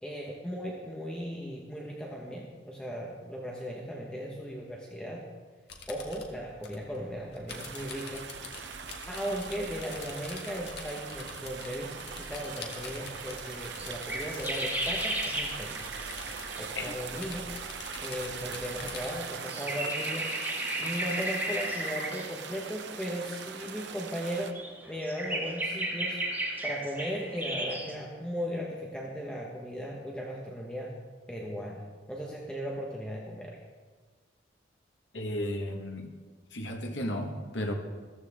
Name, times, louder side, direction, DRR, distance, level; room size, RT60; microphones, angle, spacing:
voice 1, 0.0-5.3 5.9-8.3 9.1-15.8 16.6-17.5 18.0-20.3 20.8-24.6 24.9-26.2 26.6-30.9 31.3-33.6, equal, 5° left, -3 dB, 1.4 m, -37 dB
sound 1, 5.7-19.2, left 4 dB, 60° left, 1.7 m, -46 dB
sound 2, 7.5-24.5, right 6 dB, 70° right, 0.8 m, -41 dB
sound 3, 12.1-12.2 12.5-12.7 13.1-16.7 17.9-18.0 18.2-23.6 24.0-27.9, right 1 dB, 10° right, 2.0 m, -35 dB
voice 2, 35.1-36.1 36.5-37.7, left 1 dB, 80° left, 3 dB, 1.7 m, -34 dB
14.5 x 14.5 x 3.7 m, 1.4 s
head